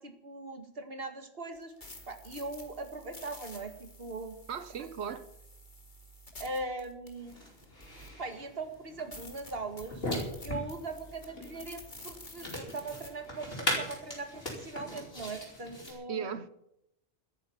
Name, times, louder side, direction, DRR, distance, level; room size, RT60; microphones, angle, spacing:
voice 1, 0.0-4.4 4.8-5.2 6.4-7.4 8.2-10.0 10.4-16.3, right 3 dB, 65° right, 2.2 m, -40 dB
sound 1, 1.5-8.3 8.7-8.8 9.1-13.1, left 1 dB, 50° left, 2.8 m, -50 dB
voice 2, 4.5-5.3 15.9-16.5, right 7 dB, 85° right, 1.3 m, -37 dB
sound 2, 7.2-15.9, equal, 65° left, 5.5 m, -39 dB
13.0 x 11.0 x 8.7 m
omnidirectional pair, 1.1 m